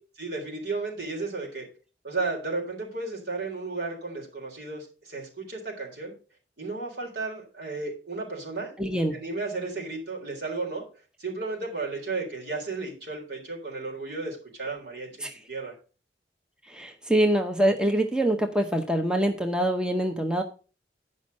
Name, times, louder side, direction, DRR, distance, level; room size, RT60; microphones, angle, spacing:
voice 1, 0.2-1.7 2.0-6.1 6.6-8.7 9.1-10.8 11.2-15.7, right 3 dB, 70° right, -1 dB, 3.7 m, -33 dB
voice 2, 8.8-9.2 15.2-15.3 16.7-20.4, right 1 dB, 5° right, 4 dB, 0.7 m, -24 dB
10.0 x 5.4 x 5.3 m, 0.35 s
head